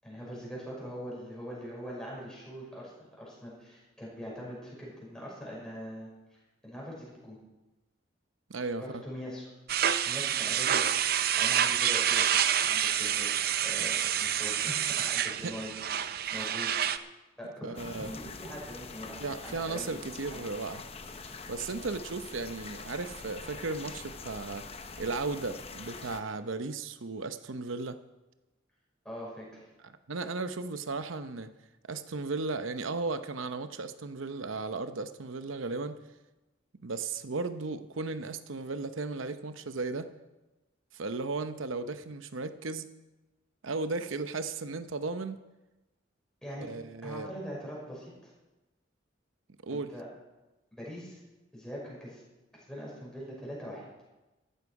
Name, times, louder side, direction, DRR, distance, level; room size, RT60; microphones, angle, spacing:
voice 1, 0.0-2.9 3.2-6.1 6.6-7.4 8.8-9.5 10.0-17.0 17.4-20.0 20.3-20.4 29.0-29.7 46.4-46.7 47.0-48.1 49.7-50.1 50.7-51.2 51.5-52.2 52.5-53.9, equal, 5° left, -5 dB, 5.8 m, -42 dB
voice 2, 8.5-8.8 15.4-15.6 16.3-16.5 17.6-18.1 19.2-20.8 21.5-24.7 25.0-28.0 29.8-31.5 31.9-36.0 36.8-40.1 40.9-42.9 43.6-45.4 46.6-47.3 49.6-49.9, right 3 dB, 85° right, 10 dB, 0.8 m, -35 dB
sound 1, 9.7-17.0, right 9 dB, 50° right, 0.5 m, -28 dB
sound 2, 17.7-26.2, left 4 dB, 30° left, 0.8 m, -44 dB
14.5 x 12.5 x 4.8 m, 1.1 s
head